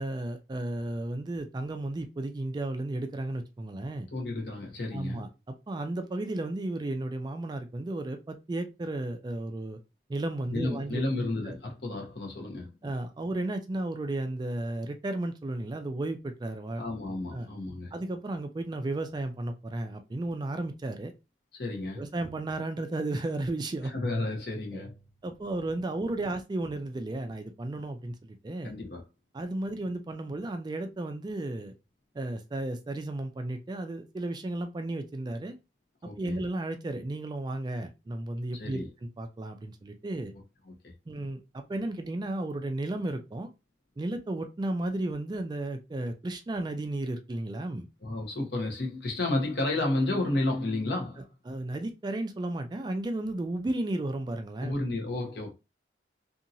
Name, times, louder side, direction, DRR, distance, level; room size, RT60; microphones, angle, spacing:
voice 1, 0.0-4.1 4.9-9.8 10.1-11.0 11.4-11.6 12.8-16.9 17.3-17.5 17.9-21.1 22.0-23.9 24.7-24.8 25.2-28.7 29.3-31.7 32.1-35.5 36.0-38.8 39.2-40.3 41.1-43.5 44.0-47.9 51.5-54.7, right 2 dB, 25° right, 0.3 m, -34 dB
voice 2, 4.1-5.2 10.5-12.7 16.8-17.9 21.5-22.0 23.9-25.0 28.6-29.0 36.0-36.4 38.6-38.9 40.7-40.8 48.0-51.3 54.6-55.5, left 2 dB, 65° left, 1.0 m, -31 dB
2.7 x 2.7 x 2.6 m
head